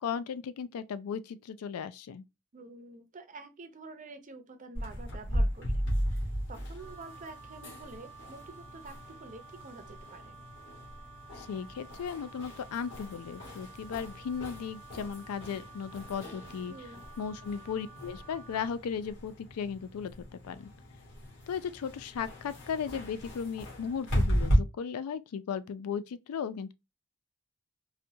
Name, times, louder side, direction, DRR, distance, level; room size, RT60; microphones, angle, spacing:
voice 1, 0.0-2.2 11.4-20.1 20.4-20.7 21.5-26.7, left 7 dB, 75° left, 0.3 m, -36 dB
voice 2, 2.5-5.8 6.1-10.4 16.7-17.1, right 3 dB, 35° right, 0.5 m, -48 dB
sound 1, 4.8-24.6, equal, 55° left, 1.5 m, -36 dB
Wind instrument woodwind instrument, 6.7-18.8, right 5 dB, 10° left, 0.7 m, -52 dB
4.0 x 2.2 x 2.7 m
head